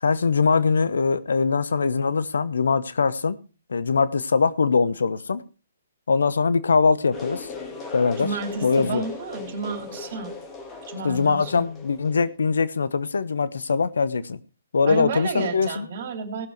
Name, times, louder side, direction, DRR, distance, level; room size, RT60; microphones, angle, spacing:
voice 1, 0.0-3.4 3.7-5.4 6.1-7.5 7.9-8.3 8.6-9.0 11.0-14.4 14.7-15.9, left 5 dB, 70° left, 15 dB, 0.8 m, -22 dB
sound 1, 7.1-12.3, left 4 dB, 20° left, 2.5 m, -38 dB
voice 2, 8.2-10.4 10.9-11.6 14.9-16.5, right 5 dB, 50° right, 7 dB, 2.8 m, -31 dB
17.5 x 7.0 x 4.5 m, 0.33 s
figure-of-eight pair, 130°, 0 cm